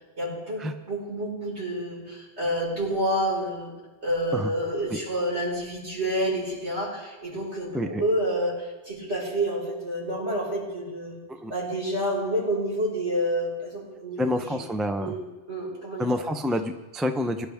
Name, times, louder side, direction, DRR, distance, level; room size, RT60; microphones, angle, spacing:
voice 1, 0.2-3.7 4.0-11.2 11.5-14.6 15.0-15.2 15.5-16.1, equal, 60° right, -4 dB, 5.6 m, -29 dB
voice 2, 14.2-15.1 16.0-17.5, left 1 dB, ahead, 7 dB, 0.5 m, -28 dB
22.0 x 11.5 x 3.6 m, 1.2 s
omnidirectional pair, 1.3 m